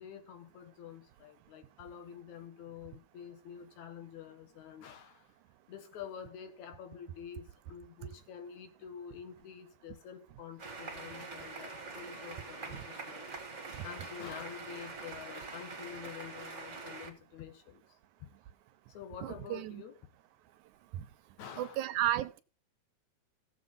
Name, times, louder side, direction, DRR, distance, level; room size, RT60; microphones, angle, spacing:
voice 1, 0.0-5.3 5.7-13.3 13.8-17.8 18.2-18.3 18.9-20.0 21.4-21.9, left 8 dB, 75° left, 2.6 m, -48 dB
sound 1, 10.6-17.1, right 3 dB, 30° right, 1.8 m, -44 dB
voice 2, 19.2-19.8 20.9-21.0 21.6-22.4, right 13 dB, 80° right, 2.2 m, -33 dB
16.5 x 7.5 x 3.8 m
omnidirectional pair, 3.5 m